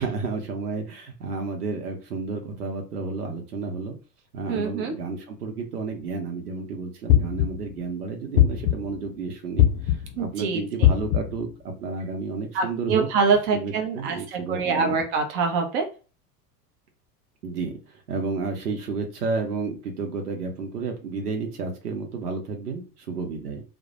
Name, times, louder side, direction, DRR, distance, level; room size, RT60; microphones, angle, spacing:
voice 1, 0.0-4.0 4.3-13.1 13.5-15.0 17.4-17.7 18.1-23.6, right 4 dB, 70° right, 3 dB, 0.8 m, -31 dB
voice 2, 4.5-4.9 10.2-10.6 12.5-15.8, right 5 dB, 30° right, 4 dB, 0.4 m, -24 dB
sound 1, 7.1-7.7 8.4-9.0 9.6-10.2 10.8-11.5, left 11 dB, 40° left, 0.5 m, -20 dB
2.1 x 2.1 x 2.8 m, 0.35 s
figure-of-eight pair, 80°, 48 cm